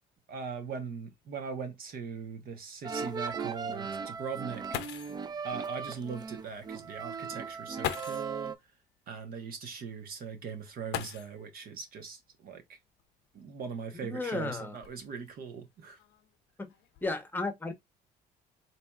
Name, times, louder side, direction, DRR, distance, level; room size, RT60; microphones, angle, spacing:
voice 1, 0.3-4.6 5.4-8.5 9.1-12.8 13.3-16.0, right 6 dB, 60° right, 1.1 m, -40 dB
sound 1, 0.8-0.9 1.3-1.4 2.0-2.1 4.4-4.5 4.7-5.3 6.6-6.7 7.8-8.4 10.9-11.6 13.0-13.1 13.8-15.3 16.0-16.3 16.7-17.1, left 12 dB, 80° left, 0.5 m, -39 dB
sound 2, 2.8-8.6, right 5 dB, 25° right, 0.4 m, -38 dB
voice 2, 14.0-14.8 17.0-17.7, left 3 dB, 10° left, 0.9 m, -33 dB
4.2 x 2.8 x 2.3 m
cardioid pair, 110°, 17 cm